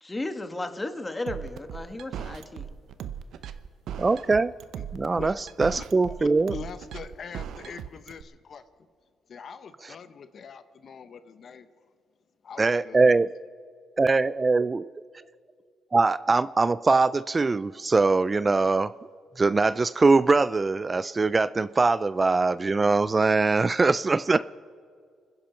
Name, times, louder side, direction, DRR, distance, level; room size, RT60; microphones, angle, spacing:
voice 1, 0.0-2.7, left 2 dB, 15° left, 8 dB, 1.4 m, -34 dB
sound 1, 1.3-8.2, right 9 dB, 75° right, 0.8 m, -38 dB
voice 2, 4.0-4.5 4.9-6.5 12.6-13.3 14.0-14.8 15.9-18.9 19.4-24.4, right 3 dB, 25° right, 16 dB, 0.3 m, -22 dB
voice 3, 6.2-8.6 9.3-11.7 12.4-13.1, left 6 dB, 55° left, 12 dB, 0.8 m, -43 dB
29.0 x 10.5 x 4.5 m, 2.1 s
cardioid pair, 90°, 0 cm